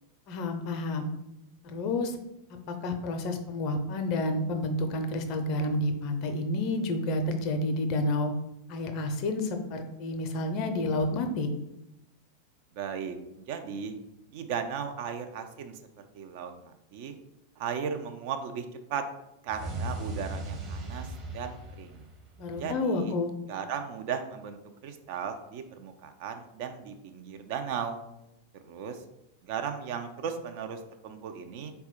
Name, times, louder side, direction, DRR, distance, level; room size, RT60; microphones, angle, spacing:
voice 1, 0.3-1.1 1.6-2.2 2.7-8.3 8.7-11.5 22.4-23.3, left 2 dB, 40° left, 6 dB, 0.5 m, -30 dB
voice 2, 12.7-14.0 14.3-15.8 16.1-17.2 17.6-19.0 19.4-22.1 22.5-23.1 23.5-28.0 28.6-29.0 29.4-31.7, right 7 dB, 45° right, 6 dB, 0.4 m, -36 dB
sound 1, 19.5-22.6, right 1 dB, 25° right, 0.8 m, -37 dB
4.0 x 2.2 x 4.3 m, 0.88 s
figure-of-eight pair, 90°, 0 cm